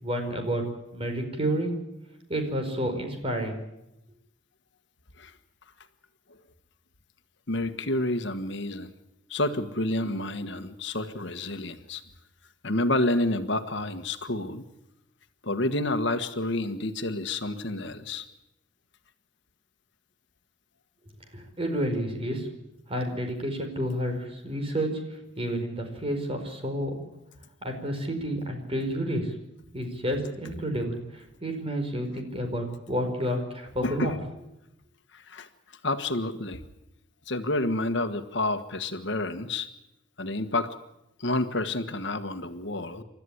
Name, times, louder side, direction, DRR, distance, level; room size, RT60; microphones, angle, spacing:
voice 1, 0.0-0.6 0.9-1.7 2.3-3.5 21.3-22.6 22.9-24.9 25.4-27.1 27.6-29.3 29.7-34.2, equal, 30° right, 4 dB, 4.8 m, -30 dB
voice 2, 7.5-8.9 9.3-12.0 12.6-14.6 15.4-18.2 33.8-34.2 35.1-35.5 35.8-36.6 37.3-39.7 40.2-40.7 41.2-43.0, left 2 dB, 65° left, 8 dB, 1.5 m, -29 dB
29.0 x 13.0 x 9.9 m, 0.88 s
head